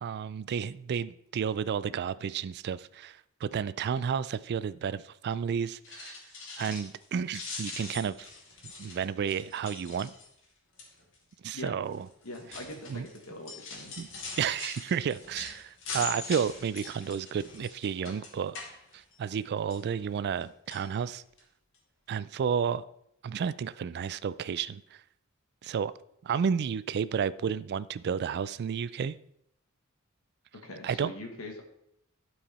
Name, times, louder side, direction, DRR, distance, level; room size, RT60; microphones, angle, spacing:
voice 1, 0.0-6.2 6.6-8.3 8.8-10.1 11.4-12.1 12.9-13.1 14.0-14.1 14.4-18.6 18.9-21.2 22.1-22.8 23.2-25.0 25.6-25.9 26.2-29.2 30.8-31.1, right 7 dB, 50° right, 17 dB, 0.3 m, -31 dB
sound 1, 5.7-7.0 7.3-10.4 10.8-11.1 11.9-19.4 19.7-20.4 20.7-20.9 21.4-21.5 21.7-21.8, left 3 dB, 65° left, 2.2 m, -42 dB
voice 2, 12.2-13.9 30.6-31.6, left 1 dB, 80° left, 2 dB, 1.4 m, -42 dB
12.0 x 4.7 x 4.2 m, 0.74 s
head